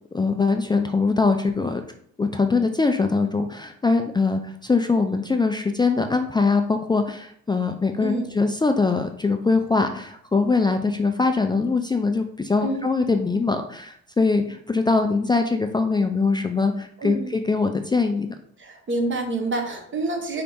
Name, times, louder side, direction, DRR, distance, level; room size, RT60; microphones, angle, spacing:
voice 1, 0.1-1.8 2.2-18.3, left 4 dB, 15° left, 5 dB, 0.4 m, -22 dB
voice 2, 17.0-17.3 18.6-20.4, right 2 dB, 40° right, 3 dB, 1.1 m, -27 dB
5.2 x 2.8 x 3.5 m, 0.63 s
cardioid pair, 90°, 30 cm